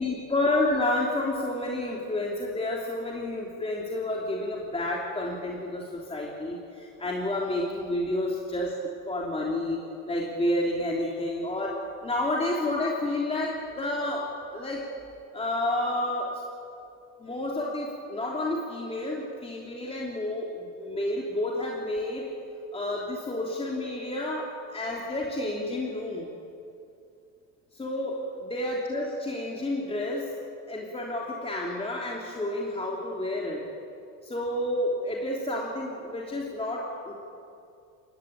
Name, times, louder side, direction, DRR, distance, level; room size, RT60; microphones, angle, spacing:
voice 1, 0.0-8.7 9.1-9.8 10.1-11.7 12.0-14.2 14.5-14.8 15.3-16.3 17.2-22.3 22.7-24.4 24.7-26.3 27.7-30.3 30.7-33.6 34.2-37.1, left 1 dB, 15° left, -2 dB, 3.3 m, -30 dB
28.0 x 16.0 x 9.0 m, 2.5 s
cardioid pair, 120°, 37 cm